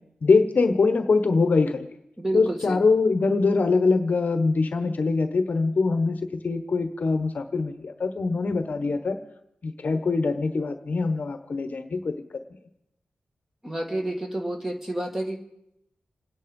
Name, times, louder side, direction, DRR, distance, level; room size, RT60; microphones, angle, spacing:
voice 1, 0.2-1.9 2.3-9.2 9.6-12.4, left 4 dB, 50° left, 9 dB, 1.1 m, -23 dB
voice 2, 2.2-2.8 13.6-15.4, right 1 dB, 10° right, 3 dB, 2.1 m, -29 dB
27.5 x 9.8 x 5.3 m, 0.82 s
wide cardioid pair, 140°, 4 cm